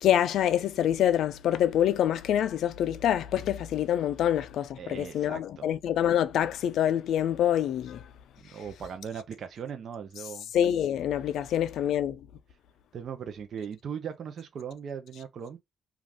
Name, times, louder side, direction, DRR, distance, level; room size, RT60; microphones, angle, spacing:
voice 1, 0.0-8.0 10.5-12.2, left 10 dB, 75° left, 0.4 m, -26 dB
voice 2, 4.8-5.7 8.4-10.5 12.9-15.6, right 7 dB, 60° right, 0.5 m, -39 dB
2.4 x 2.4 x 3.3 m
cardioid pair, 90°, 0 cm